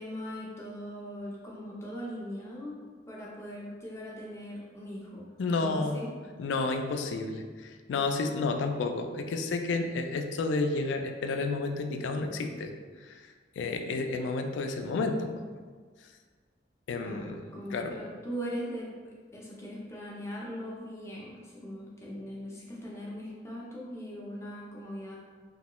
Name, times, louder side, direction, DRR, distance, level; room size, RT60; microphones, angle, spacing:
voice 1, 0.0-6.1 17.0-18.9 19.3-25.2, equal, 15° left, -5 dB, 0.4 m, -40 dB
voice 2, 5.4-6.1 6.4-15.4 16.9-17.4 17.7-17.9, left 3 dB, 85° left, 5 dB, 0.3 m, -31 dB
3.0 x 2.2 x 2.9 m, 1.6 s
head